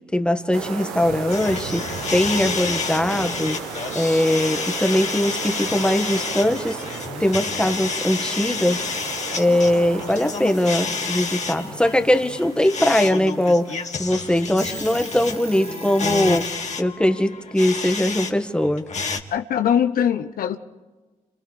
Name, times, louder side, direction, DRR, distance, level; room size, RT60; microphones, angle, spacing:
voice 1, 0.1-3.6 3.9-8.9 9.3-18.8, left 1 dB, 5° left, 1.8 m, -21 dB
sound 1, 0.5-14.7, right 5 dB, 85° right, 1.3 m, -35 dB
sound 2, 1.3-18.3 18.6-19.2, left 5 dB, 50° left, 2.2 m, -30 dB
Alarm / Clock, 4.9-5.7 6.8-6.9 7.1-8.0 9.1-9.7 11.1-11.3 12.0-12.4 12.9-13.0 13.4-13.5 14.0-14.1 14.4-16.6, right 4 dB, 40° right, 2.5 m, -41 dB
voice 2, 19.3-20.6, left 9 dB, 70° left, 0.9 m, -21 dB
30.0 x 26.5 x 3.4 m
hypercardioid pair, 40°, 16 cm